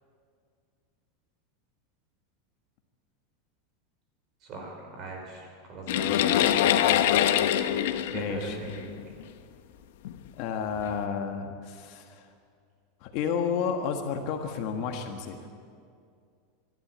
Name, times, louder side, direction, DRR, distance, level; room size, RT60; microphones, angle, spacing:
voice 1, 4.5-6.9 8.1-8.9, right 2 dB, 30° right, 2 dB, 4.5 m, -39 dB
sound 1, 5.9-9.2 10.0-10.2 10.8-10.9, left 11 dB, 65° left, 1.0 m, -24 dB
voice 2, 8.1-8.6 10.4-12.2 13.0-15.4, left 6 dB, 40° left, 4 dB, 1.5 m, -31 dB
24.0 x 12.5 x 8.6 m, 2.3 s
supercardioid pair, 175°, 0 cm